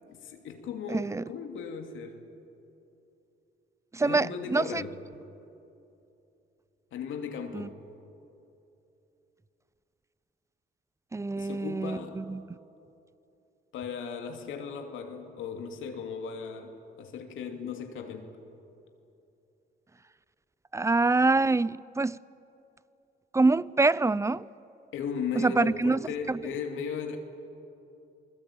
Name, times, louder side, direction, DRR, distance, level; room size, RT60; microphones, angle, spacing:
voice 1, 0.1-2.3 4.0-5.0 6.9-7.8 11.4-12.2 13.7-18.4 24.9-27.2, left 6 dB, 80° left, 2.6 m, -37 dB
voice 2, 0.9-1.2 3.9-4.8 7.5-7.7 11.1-12.4 20.7-22.2 23.3-24.4 25.4-26.0 26.3-26.4, right 3 dB, 15° right, 0.5 m, -25 dB
27.5 x 20.5 x 8.7 m
cardioid pair, 90°, 20 cm